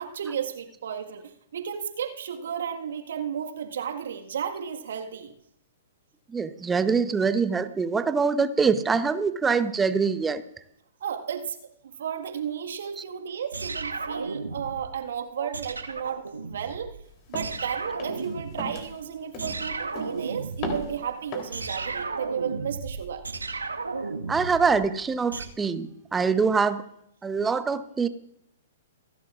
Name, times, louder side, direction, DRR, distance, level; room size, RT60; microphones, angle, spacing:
voice 1, 0.0-5.3 11.0-11.6 11.8-17.0 17.3-23.3, right 8 dB, 60° right, 4 dB, 1.6 m, -33 dB
voice 2, 6.3-10.4 15.4-15.5 24.3-26.8 27.2-28.1, right 5 dB, 10° right, 11 dB, 0.8 m, -24 dB
sound 1, 13.5-15.0 15.5-17.1 17.3-18.9 19.4-25.5, right 4 dB, 80° right, 1.2 m, -34 dB
sound 2, 17.3-17.6 18.0-18.3 18.6-18.9 19.3-19.7 20.0-20.3 20.6-21.0 21.3-21.6, left 1 dB, 35° left, 3.4 m, -35 dB
27.5 x 11.0 x 2.5 m, 0.73 s
figure-of-eight pair, 115°, 0 cm